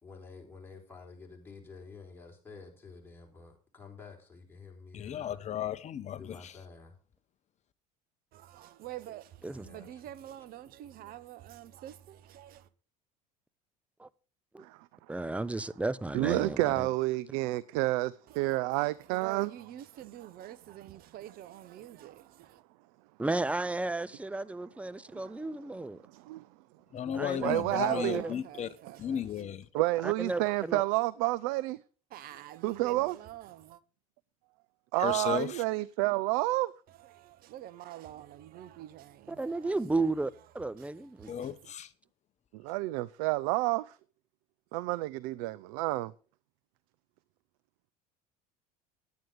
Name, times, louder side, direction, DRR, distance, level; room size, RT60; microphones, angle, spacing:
voice 1, 0.0-5.5 6.1-6.9 9.5-10.0, left 4 dB, 10° left, 4.0 m, -50 dB
voice 2, 4.9-6.6 26.9-28.7 29.0-29.7 35.0-35.6 41.3-41.9, left 9 dB, 40° left, 0.8 m, -35 dB
voice 3, 8.3-12.6 18.3-18.5 19.1-22.6 27.7-29.1 32.1-33.8 37.1-39.7 41.2-41.5, right 12 dB, 55° right, 0.8 m, -46 dB
voice 4, 15.1-16.9 23.2-26.0 27.1-27.5 27.9-28.4 30.0-30.8 39.3-41.3, right 2 dB, 5° right, 0.5 m, -33 dB
voice 5, 16.1-19.5 25.1-25.2 26.1-26.4 27.4-28.2 29.7-31.8 32.6-33.2 34.9-36.7 42.5-44.0 44.7-46.1, right 19 dB, 70° right, 0.4 m, -29 dB
9.5 x 9.1 x 5.0 m
hypercardioid pair, 80°, 19 cm